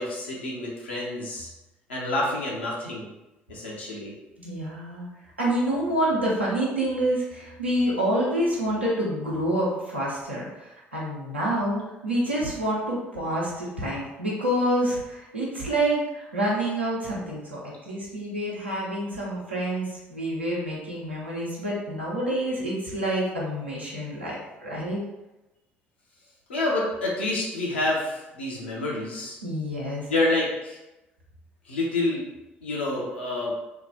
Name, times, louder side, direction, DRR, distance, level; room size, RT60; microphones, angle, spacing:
voice 1, 0.0-1.5 1.9-3.1 3.5-4.1 26.5-29.4 30.1-30.8 31.7-32.2 32.6-33.5, left 2 dB, 75° left, -4 dB, 0.8 m, -28 dB
voice 2, 4.4-5.1 5.4-24.4 24.6-25.0 29.4-30.1, right 1 dB, 90° right, -6 dB, 0.8 m, -27 dB
3.1 x 2.3 x 3.7 m, 0.99 s
figure-of-eight pair, 55°, 6 cm